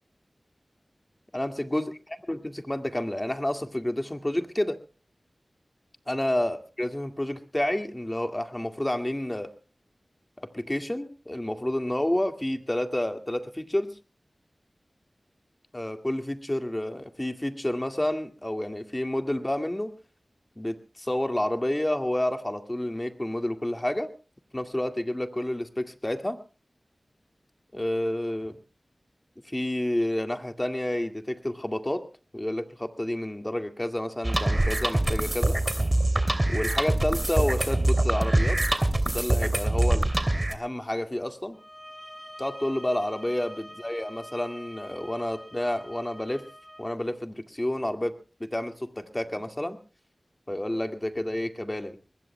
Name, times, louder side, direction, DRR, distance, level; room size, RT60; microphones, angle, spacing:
voice 1, 1.3-1.9 2.3-4.8 6.1-9.5 10.4-13.9 15.7-20.0 20.6-24.1 24.5-26.4 27.7-28.5 29.5-32.0 32.3-35.6 36.5-38.6 39.1-41.6 42.4-46.4 46.8-48.1 48.4-49.8 50.5-52.0, left 1 dB, 20° left, 7 dB, 2.0 m, -29 dB
sound 1, 34.2-40.5, right 1 dB, 30° right, 2.9 m, -24 dB
sound 2, 41.5-46.9, equal, 5° left, 6.6 m, -46 dB
24.5 x 21.0 x 2.2 m, 0.33 s
wide cardioid pair, 45°, 0 cm